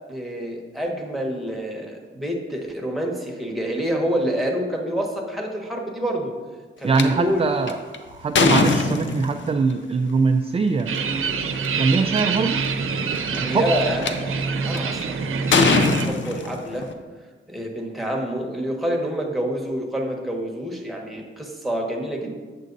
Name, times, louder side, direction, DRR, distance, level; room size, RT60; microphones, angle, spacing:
voice 1, 0.1-6.3 6.8-7.5 13.3-16.9 17.5-22.3, equal, ahead, -1 dB, 1.2 m, -27 dB
voice 2, 6.8-10.9 11.8-12.6 13.4-13.7, right 4 dB, 30° right, 5 dB, 0.3 m, -22 dB
sound 1, 7.0-7.1 7.7-9.5 10.8-11.0 11.6-11.7 11.9-12.4 13.1-14.1 14.7-15.0 15.5-16.9, left 4 dB, 65° left, 0.7 m, -21 dB
sound 2, 10.9-16.1, right 5 dB, 85° right, 0.7 m, -25 dB
8.3 x 6.4 x 3.9 m, 1.4 s
wide cardioid pair, 135°, 21 cm